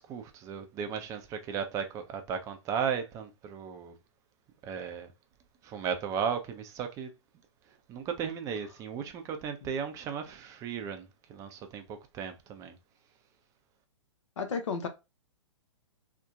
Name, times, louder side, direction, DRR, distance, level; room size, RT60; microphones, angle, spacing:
voice 1, 0.0-4.0 4.6-5.1 5.6-7.1 7.9-12.8, right 7 dB, 20° right, 0.4 m, -35 dB
voice 2, 14.4-14.9, left 5 dB, 70° left, 0.7 m, -33 dB
2.7 x 2.1 x 2.4 m
hypercardioid pair, 120°, 16 cm